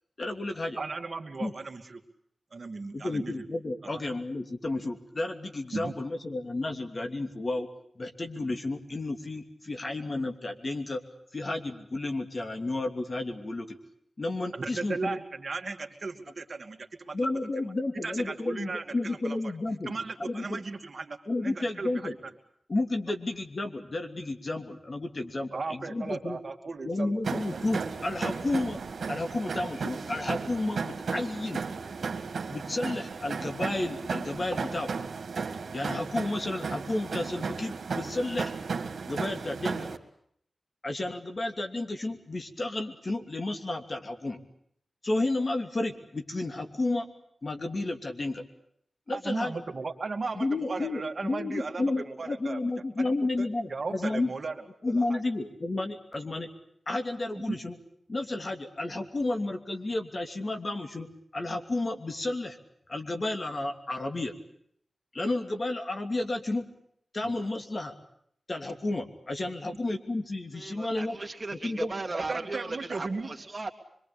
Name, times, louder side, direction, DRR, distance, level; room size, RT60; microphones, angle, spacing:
voice 1, 0.2-0.8 1.4-1.5 2.9-7.7 8.0-11.0 11.3-13.8 14.2-15.2 17.1-19.9 20.2-20.6 21.3-22.2 22.7-26.4 26.8-28.8 29.1-31.6 32.5-34.9 35.7-38.5 39.1-39.9 40.8-44.4 45.0-47.1 47.4-48.4 49.1-49.6 50.3-54.3 54.8-56.5 56.9-57.7 58.1-61.1 61.3-62.6 62.9-64.3 65.1-66.6 67.1-68.0 68.5-71.2 71.6-71.9, left 2 dB, 45° left, 5 dB, 2.9 m, -32 dB
voice 2, 0.8-2.0 2.5-3.4 5.7-5.9 14.5-17.3 17.6-17.7 18.0-19.5 19.8-21.2 21.4-22.2 25.5-27.4 49.1-52.6 53.0-53.1 53.4-54.5 54.9-55.2 57.5-57.6 67.2-67.3 69.7-69.8 72.1-73.3, right 3 dB, 55° right, 4 dB, 2.5 m, -36 dB
sound 1, 27.2-40.0, right 5 dB, 80° right, 2.1 m, -35 dB
voice 3, 70.5-73.7, right 3 dB, 35° right, 3 dB, 2.8 m, -36 dB
25.5 x 23.0 x 8.6 m, 0.68 s
wide cardioid pair, 75°, 0 cm